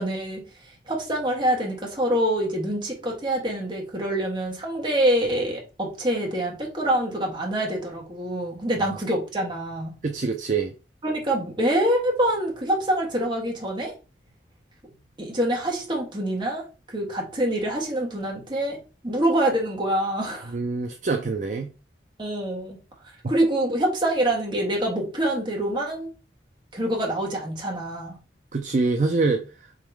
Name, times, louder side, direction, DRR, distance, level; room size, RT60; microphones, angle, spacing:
voice 1, 0.0-9.9 11.0-13.9 15.2-20.6 22.2-22.8 23.3-26.1 26.7-28.2, right 1 dB, 25° right, 1.4 m, -25 dB
voice 2, 10.0-10.7 20.5-21.7 28.5-29.5, right 3 dB, 45° right, 0.5 m, -25 dB
3.7 x 3.0 x 4.6 m
head